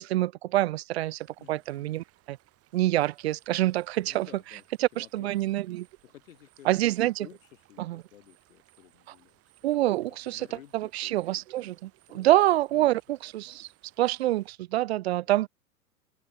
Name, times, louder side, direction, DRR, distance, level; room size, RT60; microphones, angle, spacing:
voice 1, 0.0-2.4 2.7-4.3 4.8-5.9 6.7-7.1 7.8-8.0 9.6-10.5 10.7-11.9 12.1-13.7 14.0-15.5, right 15 dB, 50° right, 0.4 m, -26 dB
sound 1, 0.9-14.5, right 15 dB, 30° right, 7.2 m, -63 dB
voice 2, 1.4-1.9 4.0-4.6 4.9-5.3 6.0-6.7 7.0-12.3 12.7-12.9 15.1-15.4, left 11 dB, 60° left, 3.2 m, -54 dB
figure-of-eight pair, 105°, 44 cm